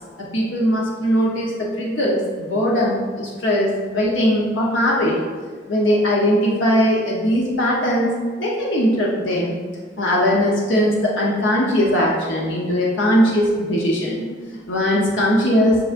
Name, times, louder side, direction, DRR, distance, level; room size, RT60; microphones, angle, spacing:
voice 1, 0.2-5.2 5.7-8.1 8.4-9.6 10.0-14.2 14.5-15.8, equal, 75° left, -3 dB, 0.9 m, -19 dB
7.6 x 6.3 x 2.6 m, 1.6 s
head